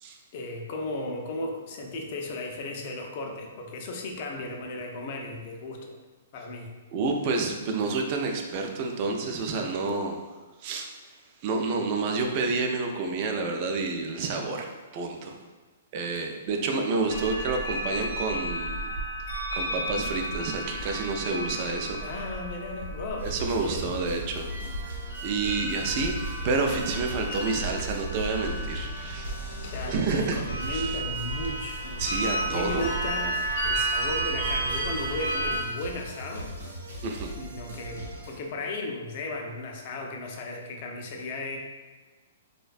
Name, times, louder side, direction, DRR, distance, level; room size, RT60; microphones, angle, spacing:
voice 1, 0.3-6.0 6.3-6.7 22.0-23.9 29.6-36.5 37.4-41.6, left 2 dB, 50° left, 2 dB, 0.4 m, -35 dB
voice 2, 6.9-10.2 10.6-10.9 11.4-15.3 15.9-18.9 19.5-22.0 23.2-24.5 25.2-29.3 29.9-30.4 30.7-31.0 32.0-32.9 37.0-37.3, right 3 dB, 40° right, 3 dB, 0.3 m, -29 dB
sound 1, 17.1-35.6, right 1 dB, 70° left, 0.7 m, -33 dB
sound 2, 23.2-38.4, right 1 dB, 90° right, 0.8 m, -39 dB
2.5 x 2.1 x 2.4 m, 1.3 s
hypercardioid pair, 145°, 0 cm